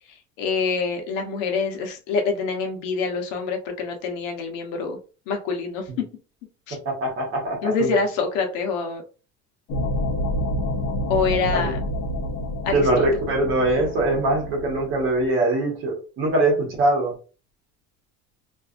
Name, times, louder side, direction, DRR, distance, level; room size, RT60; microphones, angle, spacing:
voice 1, 0.1-5.0 5.3-5.9 6.7-6.8 7.6-9.0 11.1-11.8 12.6-13.0, left 4 dB, 85° left, 3 dB, 0.9 m, -26 dB
voice 2, 6.8-7.9 11.4-11.7 12.7-17.2, right 2 dB, 40° right, 0 dB, 1.1 m, -22 dB
sound 1, 9.7-15.3, equal, 55° left, 0.9 m, -28 dB
2.6 x 2.4 x 2.5 m, 0.35 s
cardioid pair, 170°, 31 cm